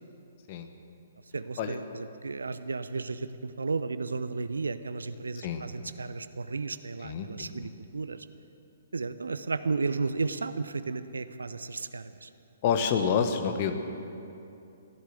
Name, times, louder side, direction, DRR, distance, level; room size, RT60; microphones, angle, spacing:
voice 1, 1.3-8.3 8.9-12.3, right 4 dB, 70° right, 12 dB, 0.7 m, -33 dB
voice 2, 7.0-7.7 12.6-13.7, left 7 dB, 35° left, 7 dB, 1.3 m, -28 dB
15.5 x 11.5 x 7.8 m, 2.7 s
figure-of-eight pair, 120°, 0 cm